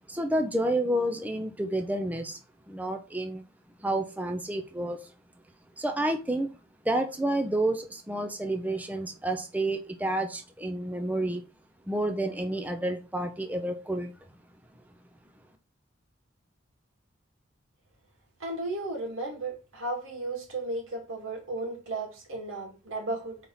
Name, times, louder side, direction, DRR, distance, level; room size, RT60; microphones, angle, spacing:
voice 1, 0.1-2.4 2.7-3.4 3.8-5.1 5.8-6.5 6.8-11.4 11.9-14.1, right 1 dB, 10° right, 5 dB, 0.5 m, -29 dB
voice 2, 18.4-23.4, right 2 dB, 80° right, -1 dB, 2.5 m, -34 dB
4.5 x 4.1 x 5.6 m, 0.34 s
head